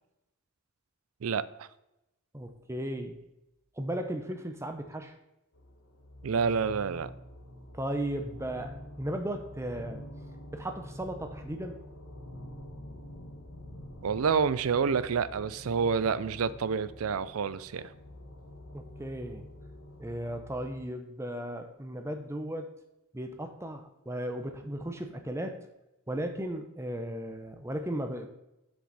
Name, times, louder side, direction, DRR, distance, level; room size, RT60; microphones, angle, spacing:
voice 1, 1.2-1.7 6.2-7.1 14.0-17.9, right 6 dB, 80° right, 16 dB, 0.4 m, -28 dB
voice 2, 2.3-3.2 3.8-5.1 7.7-10.0 10.5-11.8 18.7-19.4 20.0-22.7 23.1-25.6 26.1-28.3, right 1 dB, 15° right, 6 dB, 0.7 m, -36 dB
sound 1, 5.5-20.9, left 1 dB, 70° left, 1.2 m, -47 dB
7.7 x 6.9 x 4.1 m, 0.90 s
head